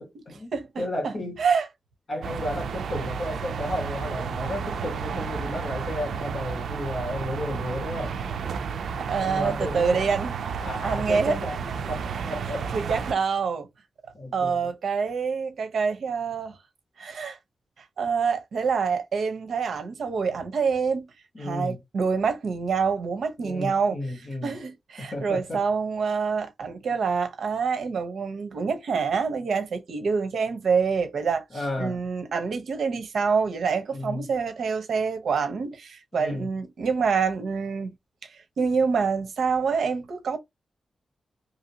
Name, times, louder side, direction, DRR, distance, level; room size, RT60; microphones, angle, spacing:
voice 1, 0.0-1.4 2.1-8.2 9.2-10.1 10.6-11.6 11.9-12.7 14.1-14.7 21.3-21.8 23.4-24.6 25.0-25.6 31.5-32.1 33.9-34.3 36.1-36.5, left 1 dB, 45° left, 1.5 m, -33 dB
voice 2, 0.5-1.1 1.4-1.6 9.0-10.3 10.8-11.4 12.7-13.7 14.3-16.6 17.0-17.4 18.0-21.1 21.4-24.0 24.4-37.9 38.3-40.4, right 5 dB, 70° right, 0.8 m, -26 dB
sound 1, 2.2-13.1, right 6 dB, 90° right, 0.3 m, -32 dB
2.8 x 2.7 x 2.8 m
wide cardioid pair, 145°, 0 cm